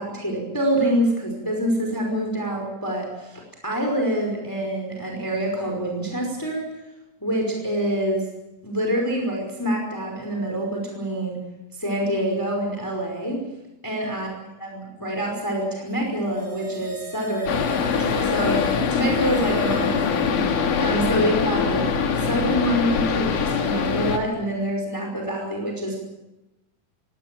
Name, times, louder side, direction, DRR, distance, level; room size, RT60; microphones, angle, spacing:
voice 1, 0.0-6.6 7.2-8.3 8.6-11.4 11.8-13.4 13.8-26.0, right 1 dB, 5° left, 1 dB, 5.0 m, -26 dB
sound 1, 16.0-21.4 21.7-21.8, left 1 dB, 85° right, 9.4 m, -39 dB
sound 2, 17.5-24.2, left 6 dB, 80° left, 3.6 m, -23 dB
22.5 x 18.5 x 7.7 m, 0.96 s
omnidirectional pair, 3.6 m